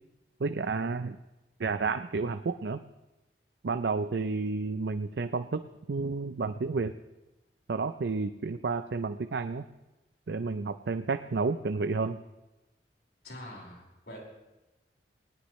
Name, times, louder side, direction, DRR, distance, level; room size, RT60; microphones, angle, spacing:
voice 1, 0.4-1.2 1.6-2.8 3.6-6.9 7.7-9.7 10.3-12.2, right 4 dB, 80° right, 9 dB, 0.5 m, -31 dB
voice 2, 13.2-14.2, left 1 dB, 70° left, -2 dB, 4.9 m, -45 dB
19.5 x 18.0 x 3.2 m, 1.0 s
head